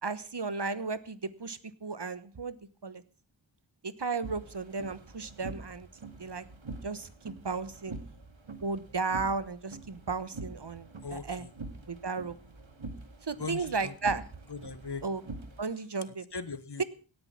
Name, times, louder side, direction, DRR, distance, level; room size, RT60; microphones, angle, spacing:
voice 1, 0.0-2.6 2.8-3.0 3.8-5.9 6.2-6.4 6.8-8.0 8.6-11.5 11.9-12.3 13.3-14.2 15.0-15.2 15.6-16.3, right 4 dB, 60° right, 15 dB, 1.2 m, -34 dB
sound 1, 4.2-15.6, right 2 dB, 85° right, 2.1 m, -45 dB
voice 2, 11.0-11.5 13.4-13.9 14.5-15.0 16.3-16.8, left 5 dB, 60° left, 14 dB, 1.4 m, -39 dB
17.5 x 9.9 x 5.9 m, 0.38 s
wide cardioid pair, 40°, 46 cm